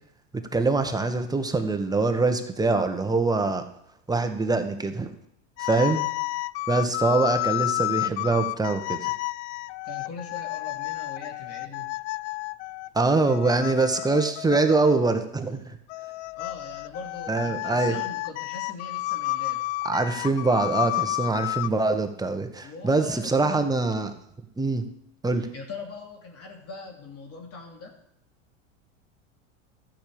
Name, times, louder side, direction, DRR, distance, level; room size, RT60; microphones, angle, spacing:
voice 1, 0.3-3.6 4.1-5.1 5.6-6.0 6.7-9.1 12.9-15.6 17.3-17.9 19.8-24.1 24.6-24.8 25.2-25.5, right 3 dB, 10° right, 6 dB, 1.5 m, -24 dB
sound 1, 5.6-15.1 15.9-21.7, left 20 dB, 70° left, 0.5 m, -31 dB
voice 2, 9.8-12.0 16.3-19.7 22.6-23.6 25.3-27.9, left 4 dB, 40° left, 1 dB, 2.9 m, -41 dB
12.0 x 6.8 x 8.8 m, 0.77 s
hypercardioid pair, 100°, 37 cm